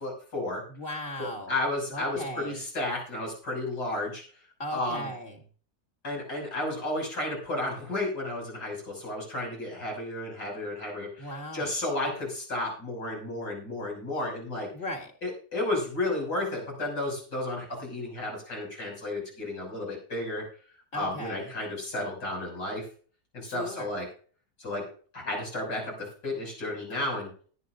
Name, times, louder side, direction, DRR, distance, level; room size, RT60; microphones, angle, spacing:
voice 1, 0.0-0.6 1.2-4.2 4.7-5.1 6.0-14.7 15.2-20.4 20.9-22.9 23.3-24.1 24.6-24.9 25.1-27.3, left 2 dB, 75° left, -2 dB, 7.1 m, -32 dB
voice 2, 0.7-1.5 1.9-2.6 4.6-5.4 11.2-11.7 14.7-15.1 20.9-21.5 23.4-23.9, left 1 dB, 30° left, 3 dB, 2.7 m, -37 dB
19.5 x 9.8 x 2.6 m, 0.42 s
omnidirectional pair, 1.8 m